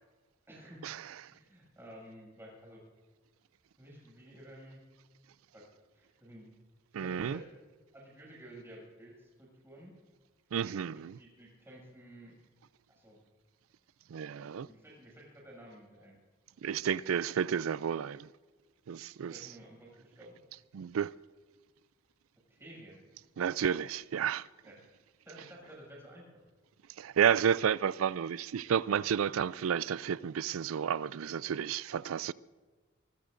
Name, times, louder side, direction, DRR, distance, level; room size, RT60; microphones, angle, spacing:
voice 1, 0.5-0.8 1.3-2.8 3.8-4.8 5.5-6.5 6.9-7.5 7.9-9.9 10.9-12.3 12.9-13.2 14.4-16.2 19.2-20.4 22.5-23.0 24.6-24.9 25.3-26.4, right 1 dB, 10° right, 6.7 m, -52 dB
voice 2, 6.9-7.4 10.5-11.2 14.1-14.7 16.6-18.3 18.9-19.3 20.7-21.1 23.4-24.4 27.0-32.3, right 8 dB, 80° right, 0.4 m, -31 dB
25.0 x 20.5 x 2.6 m
head